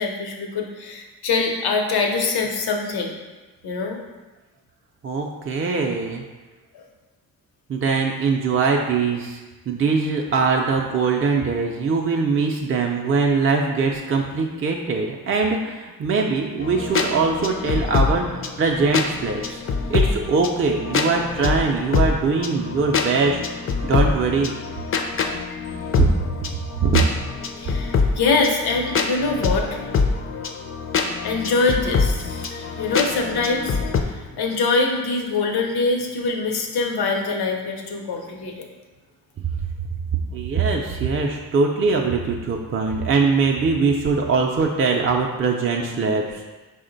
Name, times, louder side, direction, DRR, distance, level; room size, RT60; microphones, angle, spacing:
voice 1, 0.0-3.1 3.6-4.0 6.7-6.8 27.6-29.8 31.2-38.7, left 3 dB, 85° left, 2 dB, 0.7 m, -24 dB
voice 2, 5.0-6.2 7.7-9.4 9.7-19.6 19.9-23.4 23.9-24.6 26.0-26.1 26.8-27.0 40.3-46.5, right 4 dB, 35° right, 1 dB, 0.4 m, -22 dB
sound 1, 16.6-34.0, left 5 dB, 35° left, 0.4 m, -25 dB
4.3 x 2.1 x 3.8 m, 1.2 s
cardioid pair, 75°, 37 cm